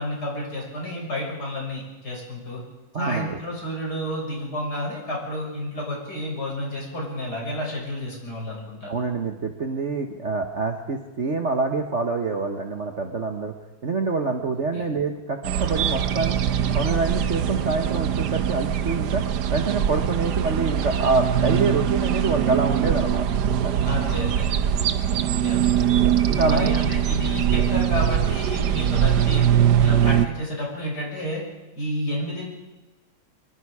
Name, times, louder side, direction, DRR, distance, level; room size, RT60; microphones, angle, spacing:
voice 1, 0.0-2.6 3.0-8.9 14.7-14.9 23.8-24.7 25.4-25.6 26.4-29.5 29.8-31.4 31.8-32.5, left 1 dB, 50° left, -2 dB, 7.0 m, -30 dB
voice 2, 2.9-3.4 8.9-13.5 13.8-16.4 16.7-19.2 19.5-23.3 23.6-23.7 26.3-26.7, right 4 dB, 40° right, 4 dB, 1.4 m, -26 dB
sound 1, 15.4-30.3, right 9 dB, 60° right, 1.3 m, -22 dB
26.0 x 21.5 x 4.9 m, 1.1 s
omnidirectional pair, 2.3 m